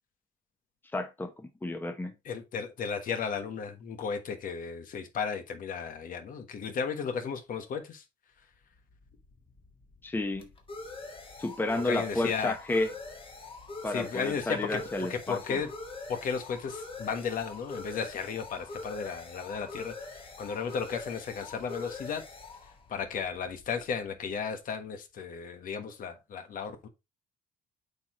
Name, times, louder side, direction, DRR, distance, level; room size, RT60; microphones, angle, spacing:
voice 1, 0.9-2.1 10.0-10.5 11.4-12.9 13.8-15.6, left 2 dB, 10° left, 1.1 m, -31 dB
voice 2, 2.2-8.0 11.8-12.5 13.9-14.8 15.1-15.7 16.1-19.9 20.4-22.2 22.9-26.9, left 6 dB, 55° left, 1.4 m, -34 dB
sound 1, 8.8-24.2, left 3 dB, 30° left, 1.8 m, -44 dB
8.2 x 4.7 x 3.1 m
cardioid pair, 110°, 17 cm